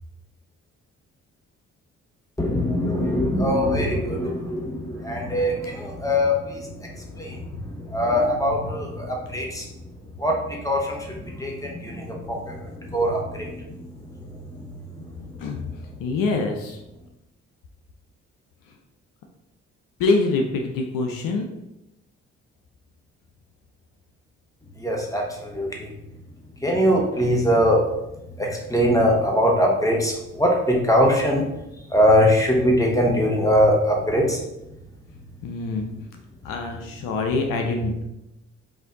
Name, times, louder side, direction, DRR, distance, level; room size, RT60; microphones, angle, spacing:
voice 1, 2.4-6.7 7.1-7.4 7.9-9.7 10.2-12.6 12.9-13.6 24.8-25.9 26.6-27.8 28.4-31.4 31.9-34.4, equal, 10° left, -1 dB, 1.3 m, -22 dB
voice 2, 16.0-16.8 20.0-21.4 35.4-35.9 36.4-38.0, left 3 dB, 70° left, 3 dB, 0.6 m, -24 dB
4.1 x 2.6 x 3.8 m, 0.91 s
hypercardioid pair, 45°, 35 cm